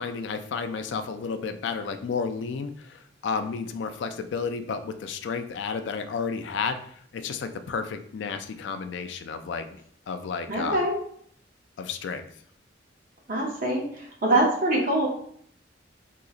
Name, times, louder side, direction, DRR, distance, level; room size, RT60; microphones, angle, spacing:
voice 1, 0.0-6.8 7.1-9.8 10.1-10.8 11.8-12.3, left 5 dB, 65° left, 8 dB, 0.3 m, -32 dB
voice 2, 10.5-10.9 13.3-15.1, right 1 dB, 45° right, -1 dB, 0.7 m, -24 dB
3.8 x 2.9 x 2.4 m, 0.63 s
head